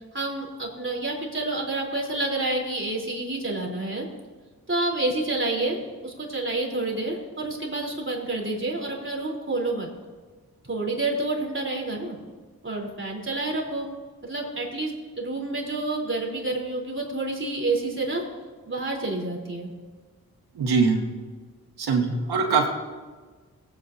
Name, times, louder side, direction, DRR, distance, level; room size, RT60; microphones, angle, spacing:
voice 1, 0.1-4.0 4.7-5.8 6.0-9.9 10.6-12.1 12.6-13.9 14.2-18.2 18.7-19.7 22.4-22.5, right 2 dB, 30° right, -2 dB, 3.4 m, -28 dB
voice 2, 20.6-21.0 21.8-22.7, right 4 dB, 80° right, 2 dB, 1.6 m, -22 dB
18.0 x 8.7 x 2.6 m, 1.4 s
cardioid pair, 45°, 38 cm